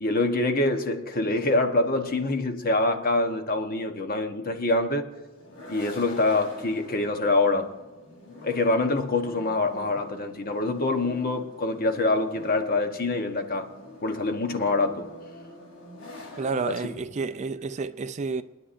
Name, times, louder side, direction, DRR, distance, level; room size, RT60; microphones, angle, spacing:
voice 1, 0.0-5.1 5.7-7.7 8.4-13.7 14.0-15.1 16.3-17.1, left 2 dB, 45° left, 1.0 m, -25 dB
sound 1, 5.1-17.0, left 1 dB, 70° left, 3.6 m, -45 dB
voice 2, 16.4-18.4, right 4 dB, 35° right, 0.3 m, -30 dB
29.0 x 9.9 x 2.6 m
head